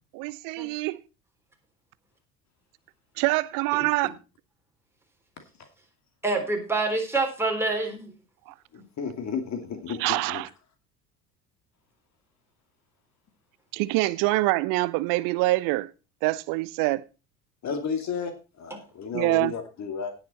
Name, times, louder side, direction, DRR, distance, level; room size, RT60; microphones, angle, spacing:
voice 1, 0.1-1.0 3.2-4.2 8.5-8.6 10.0-10.5 13.7-15.9 16.2-17.0 19.1-19.5, right 20 dB, 45° right, 0.8 m, -25 dB
voice 2, 6.2-8.1, right 3 dB, 5° right, 3.7 m, -26 dB
voice 3, 9.0-10.4 17.6-20.1, left 6 dB, 35° left, 2.5 m, -32 dB
17.5 x 6.3 x 4.2 m
figure-of-eight pair, 65°, 48 cm